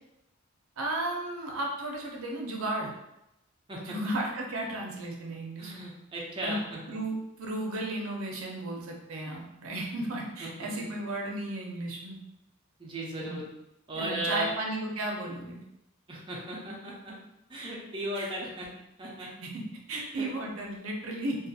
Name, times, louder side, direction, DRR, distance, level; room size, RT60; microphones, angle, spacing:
voice 1, 0.8-2.9 3.9-5.9 6.4-6.6 6.9-12.2 13.2-13.4 13.9-15.6 18.2-18.3 19.2-19.6 19.9-21.4, right 1 dB, 85° right, 0 dB, 0.5 m, -34 dB
voice 2, 5.6-7.0 10.4-10.7 12.8-13.5 13.9-14.5 16.1-17.1 17.5-18.7 19.0-19.3 19.9-20.5, right 1 dB, 25° right, -4 dB, 0.5 m, -36 dB
2.5 x 2.3 x 2.7 m, 0.86 s
head